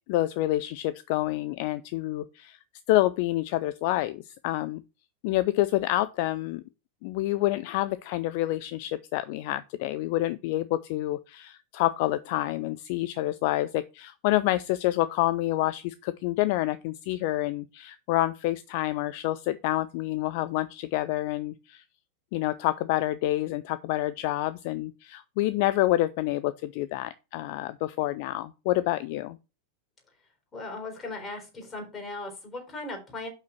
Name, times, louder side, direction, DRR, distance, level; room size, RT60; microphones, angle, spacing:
voice 1, 0.1-2.6 2.9-4.8 5.2-6.6 7.0-21.8 22.3-29.4, left 16 dB, 45° left, 0.4 m, -28 dB
voice 2, 30.5-33.3, left 2 dB, 20° left, 4.1 m, -38 dB
6.0 x 5.7 x 6.1 m
figure-of-eight pair, 90°, 0 cm